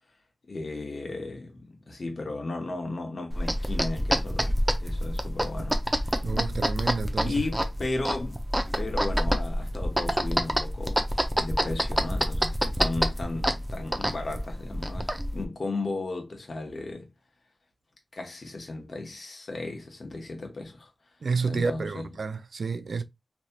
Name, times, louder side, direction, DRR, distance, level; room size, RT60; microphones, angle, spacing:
voice 1, 0.5-4.5 4.8-6.2 7.2-17.1 18.1-20.9 21.4-22.1, left 2 dB, 65° left, 1.1 m, -35 dB
sound 1, 3.3-15.5, equal, 10° right, 0.6 m, -27 dB
voice 2, 6.2-7.3 21.2-23.0, right 4 dB, 80° right, 0.4 m, -30 dB
3.2 x 2.8 x 2.3 m
cardioid pair, 45°, 0 cm